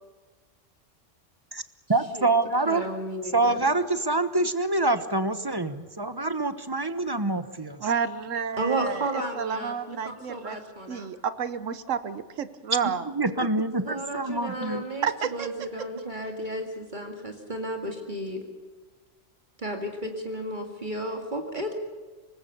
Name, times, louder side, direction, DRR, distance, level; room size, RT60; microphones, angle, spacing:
voice 1, 1.9-2.8 3.3-7.9 13.0-14.8, right 2 dB, 20° right, 11 dB, 1.1 m, -26 dB
voice 2, 2.6-3.6 8.6-11.1 13.8-18.4 19.6-21.7, right 1 dB, 40° right, 3 dB, 2.3 m, -33 dB
voice 3, 7.8-10.6 10.9-13.1 15.0-15.5, right 7 dB, 85° right, 13 dB, 1.2 m, -30 dB
24.5 x 20.0 x 6.9 m, 1.4 s
omnidirectional pair, 1.3 m